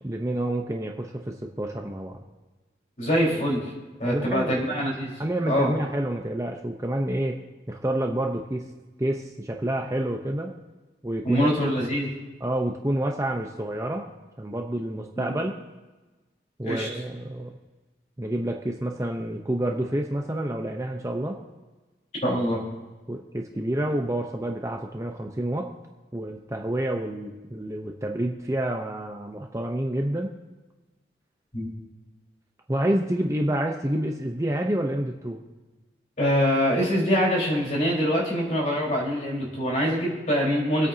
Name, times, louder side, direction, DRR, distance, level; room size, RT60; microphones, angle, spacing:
voice 1, 0.0-2.2 4.0-4.6 5.2-7.4 7.7-8.7 9.0-10.5 11.0-11.5 12.4-14.0 14.4-15.5 16.6-17.6 18.2-21.4 23.1-25.7 26.1-30.3 32.7-35.4, right 1 dB, 15° right, 2 dB, 0.8 m, -28 dB
voice 2, 3.0-3.6 4.0-5.1 5.5-5.7 11.2-12.1 15.2-15.3 16.6-16.9 22.2-22.6 31.5-31.7 36.2-40.9, equal, 40° left, -3 dB, 4.4 m, -24 dB
24.5 x 8.7 x 2.8 m, 1.2 s
head